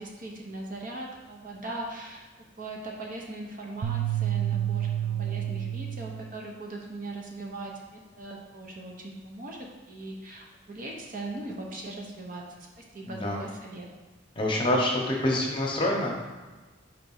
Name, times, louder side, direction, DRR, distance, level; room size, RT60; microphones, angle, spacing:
voice 1, 0.0-2.2 2.6-12.4 12.8-13.9, right 2 dB, 45° right, -1 dB, 0.8 m, -39 dB
sound 1, 3.8-6.3, right 11 dB, 85° right, 0.4 m, -29 dB
voice 2, 13.1-13.4 14.4-16.2, left 1 dB, 25° left, -1 dB, 1.0 m, -26 dB
4.6 x 3.7 x 5.5 m, 1.2 s
head